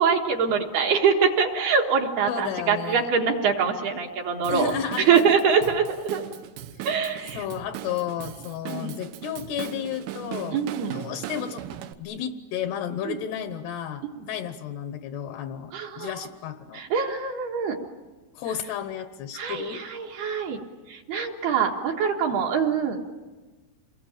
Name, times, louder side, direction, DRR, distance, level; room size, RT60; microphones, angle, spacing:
voice 1, 0.0-4.7 5.0-6.2 6.8-7.4 8.7-8.9 10.5-10.9 13.1-13.2 14.2-14.3 15.7-16.3 16.7-17.8 19.3-20.6 20.9-23.0, right 6 dB, 65° right, 1 dB, 3.0 m, -24 dB
voice 2, 2.3-3.1 4.5-5.2 7.3-10.6 10.9-11.6 12.0-16.8 18.4-19.8, left 9 dB, 75° left, 9 dB, 2.6 m, -32 dB
Drum kit / Drum, 4.4-11.9, right 10 dB, 80° right, 3.5 m, -38 dB
28.5 x 21.0 x 8.9 m, 1.3 s
omnidirectional pair, 5.8 m